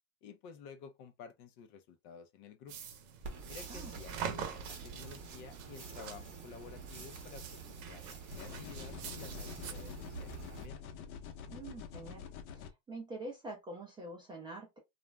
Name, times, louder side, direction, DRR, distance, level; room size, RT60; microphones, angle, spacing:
voice 1, 0.2-2.8 3.5-10.8, left 6 dB, 45° left, 0.5 m, -52 dB
turning pages in book, 2.7-9.7, right 7 dB, 65° right, 0.8 m, -46 dB
sound 1, 3.2-10.7, right 4 dB, 30° right, 0.8 m, -48 dB
sound 2, 8.3-12.7, left 7 dB, 70° left, 0.8 m, -47 dB
voice 2, 11.5-12.3 12.5-14.8, right 2 dB, 10° right, 0.4 m, -45 dB
2.4 x 2.1 x 3.2 m
supercardioid pair, 150°, 43 cm